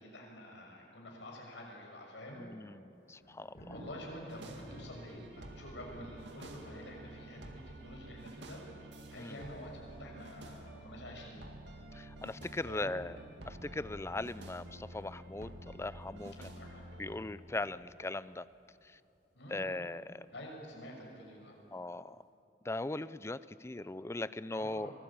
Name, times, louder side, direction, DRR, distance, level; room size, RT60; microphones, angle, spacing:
voice 1, 0.0-2.4 3.7-8.6 9.1-11.4 12.6-13.0 16.4-17.2 19.3-19.8 20.3-21.5 24.5-24.9, left 1 dB, 80° left, 0 dB, 6.3 m, -48 dB
voice 2, 2.4-3.7 9.2-9.4 11.9-13.2 13.5-16.6 17.0-18.5 19.5-20.2 21.7-22.2 22.6-24.9, left 2 dB, 15° left, 16 dB, 0.5 m, -39 dB
Thunder, 2.9-21.7 22.1-22.2, equal, 55° left, 7.5 m, -59 dB
sound 1, 4.3-17.2, right 1 dB, 70° right, 2.3 m, -50 dB
24.5 x 19.0 x 8.8 m, 2.7 s
head